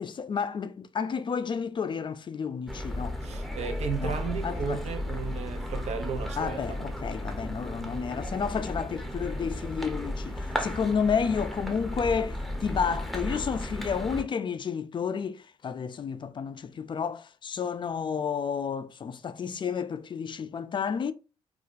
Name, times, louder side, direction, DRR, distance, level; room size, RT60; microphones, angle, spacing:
voice 1, 0.0-3.2 4.0-4.8 6.4-21.1, left 6 dB, 40° left, 0.4 m, -31 dB
sound 1, 2.7-14.2, left 1 dB, ahead, 0.7 m, -34 dB
voice 2, 3.2-6.8, right 7 dB, 70° right, 0.6 m, -34 dB
2.4 x 2.2 x 3.9 m
cardioid pair, 65°, 12 cm